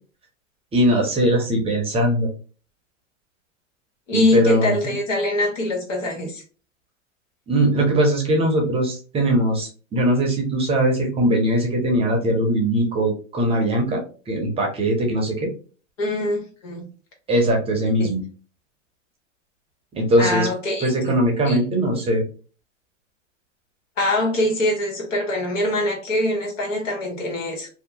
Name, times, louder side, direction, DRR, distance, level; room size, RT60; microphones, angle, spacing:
voice 1, 0.7-2.3 4.1-4.9 7.5-15.5 17.3-18.2 20.0-20.5 20.8-22.2, right 1 dB, 15° right, 0.6 m, -20 dB
voice 2, 4.1-6.4 16.0-16.9 18.0-18.1 20.2-21.2 21.5-21.6 24.0-27.7, left 1 dB, 85° left, 1.3 m, -23 dB
2.8 x 2.1 x 2.7 m
hypercardioid pair, 125°, 38 cm